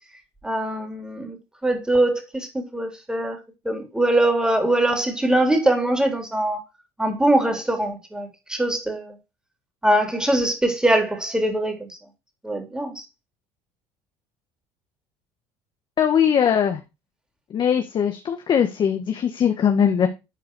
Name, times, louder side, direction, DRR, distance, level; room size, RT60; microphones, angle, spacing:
voice 1, 0.4-1.4 1.6-3.4 3.6-6.6 7.0-9.2 9.8-11.9 12.4-13.0, right 1 dB, 5° right, 3.1 m, -22 dB
voice 2, 16.0-16.8 17.5-20.1, left 8 dB, 40° left, 1.2 m, -20 dB
10.0 x 4.7 x 4.7 m
supercardioid pair, 100°, 11 cm